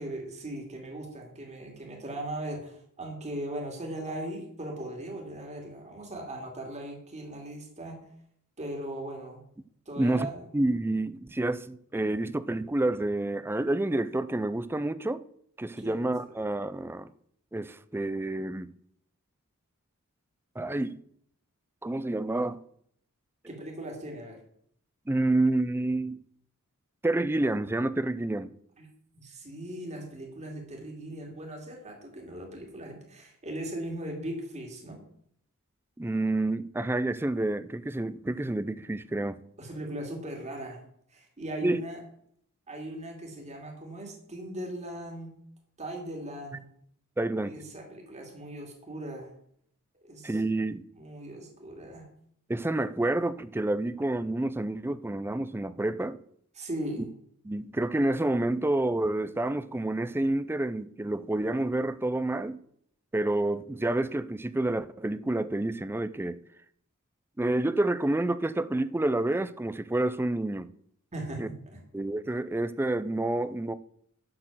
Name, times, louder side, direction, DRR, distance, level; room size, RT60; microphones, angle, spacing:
voice 1, 0.0-8.0 8.6-9.4 9.9-10.4 15.8-16.0 23.5-24.4 28.8-28.9 29.1-35.0 39.6-40.8 41.1-42.0 42.7-45.3 45.8-46.7 47.4-49.3 50.0-50.4 51.0-52.1 56.5-57.0 71.1-71.8, right 1 dB, 30° right, 2.6 m, -38 dB
voice 2, 10.0-10.3 10.5-15.2 15.6-17.1 17.5-18.7 20.6-21.0 21.8-22.6 25.1-26.2 27.0-28.5 36.0-39.4 41.6-41.8 47.2-47.6 50.2-50.8 52.5-56.2 57.4-62.6 63.1-66.4 67.4-70.7 71.4-71.5 71.9-73.7, right 2 dB, 10° right, 0.4 m, -28 dB
12.0 x 4.4 x 7.5 m
head